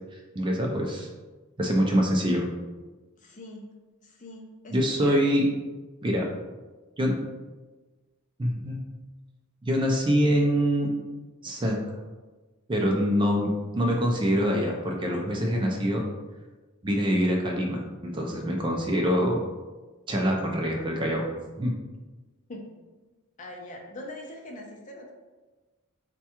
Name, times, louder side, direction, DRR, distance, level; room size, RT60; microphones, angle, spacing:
voice 1, 0.4-1.1 1.6-2.5 4.7-5.4 6.0-6.3 7.0-7.2 8.4-8.8 9.6-10.9 11.4-11.8 12.7-16.0 16.8-19.4 20.1-21.2 21.6-21.7, equal, 20° right, 0 dB, 0.4 m, -25 dB
voice 2, 3.2-3.7 4.0-5.2 22.5-22.7 23.4-25.1, left 1 dB, 35° left, 0 dB, 0.5 m, -42 dB
4.5 x 2.2 x 2.9 m, 1.2 s
head